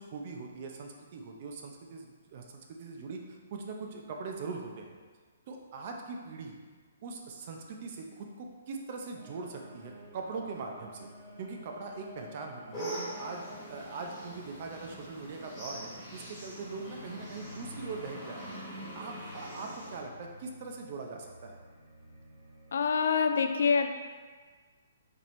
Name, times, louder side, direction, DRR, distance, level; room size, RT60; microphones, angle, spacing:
voice 1, 0.0-5.0 5.5-6.6 7.0-11.1 11.4-13.4 13.7-18.6 18.9-21.6, right 4 dB, 40° right, 2 dB, 0.5 m, -41 dB
sound 1, 9.2-23.3, equal, 60° right, 1.4 m, -53 dB
sound 2, 12.7-20.0, equal, 10° left, 1.4 m, -43 dB
voice 2, 22.7-23.9, left 5 dB, 70° left, 7 dB, 0.3 m, -26 dB
4.3 x 2.9 x 3.1 m, 1.5 s
hypercardioid pair, 165°, 0 cm